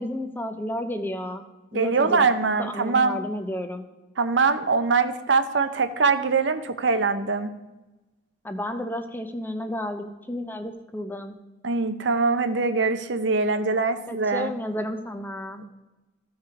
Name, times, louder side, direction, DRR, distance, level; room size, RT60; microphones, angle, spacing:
voice 1, 0.0-1.5 1.7-2.3 2.6-3.9 8.4-11.4 14.1-15.7, left 1 dB, 10° left, 8 dB, 0.5 m, -32 dB
voice 2, 1.7-3.2 4.2-7.5 11.6-14.5, right 4 dB, 75° right, 9 dB, 0.7 m, -23 dB
14.0 x 4.8 x 4.7 m, 1.1 s
head